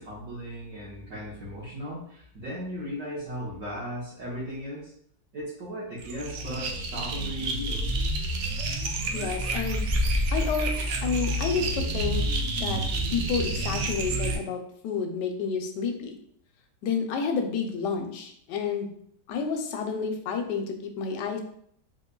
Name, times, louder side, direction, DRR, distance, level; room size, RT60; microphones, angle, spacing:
voice 1, 0.0-4.9 5.3-7.9, equal, 60° right, -8 dB, 1.3 m, -36 dB
sound 1, 6.0-14.4, right 1 dB, 80° right, 0.6 m, -28 dB
voice 2, 9.1-9.8 10.3-10.7 11.0-12.2 12.6-12.8 13.1-16.2 16.8-18.9 19.3-21.4, left 6 dB, 85° left, 5 dB, 1.2 m, -30 dB
3.8 x 3.1 x 2.2 m, 0.66 s
omnidirectional pair, 1.8 m